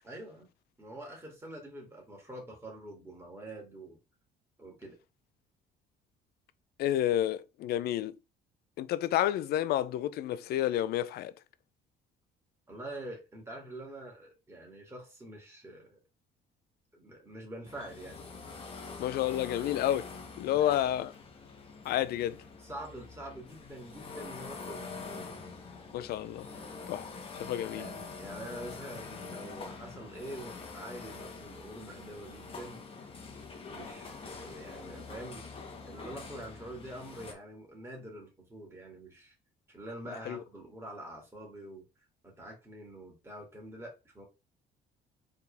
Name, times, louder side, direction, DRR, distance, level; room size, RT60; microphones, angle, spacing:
voice 1, 0.0-0.5 0.8-4.0 4.6-5.0 12.7-16.0 16.9-18.2 20.5-20.9 22.6-25.3 27.7-32.9 33.7-39.3 39.7-41.9 42.2-44.2, right 1 dB, 15° right, 2.5 m, -45 dB
voice 2, 6.8-8.2 8.8-11.3 19.0-20.1 20.4-21.1 21.8-22.4 25.9-26.5 26.9-27.1 27.4-27.9 40.3-40.4, left 12 dB, 70° left, 0.5 m, -30 dB
sound 1, 17.6-37.3, left 4 dB, 35° left, 1.3 m, -45 dB
4.2 x 3.7 x 3.4 m
cardioid pair, 110°, 17 cm